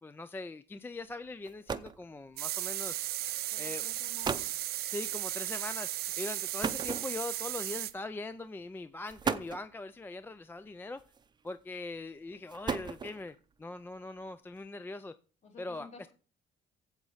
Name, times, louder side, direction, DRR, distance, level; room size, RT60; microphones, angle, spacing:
voice 1, 0.0-3.0 3.6-3.9 4.9-11.0 11.4-15.2 15.6-16.1, left 2 dB, 10° left, 0.3 m, -41 dB
sound 1, 1.1-1.2 1.4-2.1 3.0-3.3 3.9-4.0 4.2-4.6 6.6-7.5 8.4-8.5 9.0-9.7 11.0-11.5 12.3-13.3, right 5 dB, 25° right, 0.6 m, -36 dB
sound 2, 2.4-7.9, right 14 dB, 70° right, 0.6 m, -36 dB
voice 2, 3.5-4.5 15.4-16.1, left 5 dB, 45° left, 2.6 m, -52 dB
7.9 x 7.8 x 5.5 m
cardioid pair, 110°, 17 cm